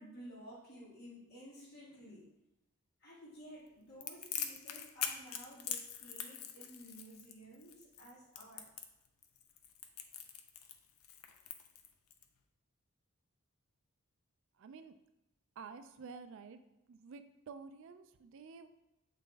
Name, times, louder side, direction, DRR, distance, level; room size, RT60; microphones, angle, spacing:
voice 1, 0.0-2.3 3.0-8.7, equal, 50° left, -10 dB, 1.9 m, -54 dB
Crackle, 4.0-12.2, left 8 dB, 75° left, 0.6 m, -43 dB
voice 2, 14.6-14.9 15.6-16.6 16.9-18.7, right 5 dB, 60° right, 10 dB, 0.3 m, -50 dB
7.2 x 4.1 x 3.4 m, 0.92 s
head